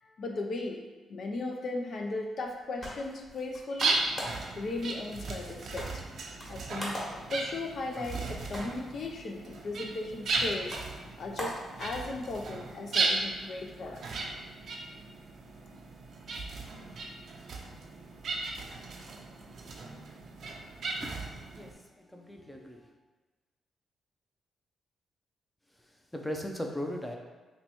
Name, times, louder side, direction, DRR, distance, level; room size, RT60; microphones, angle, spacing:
voice 1, 0.0-4.0 4.6-6.0 6.5-10.8 11.2-14.1, left 2 dB, 65° left, 2 dB, 0.4 m, -37 dB
sound 1, 2.4-12.4, left 1 dB, 30° left, 1.3 m, -44 dB
sound 2, 3.8-21.7, right 3 dB, 65° right, 0.4 m, -36 dB
voice 2, 21.0-22.9 26.1-27.2, left 1 dB, 10° left, 2 dB, 0.5 m, -38 dB
2.9 x 2.3 x 4.1 m, 1.3 s
cardioid pair, 70°, 0 cm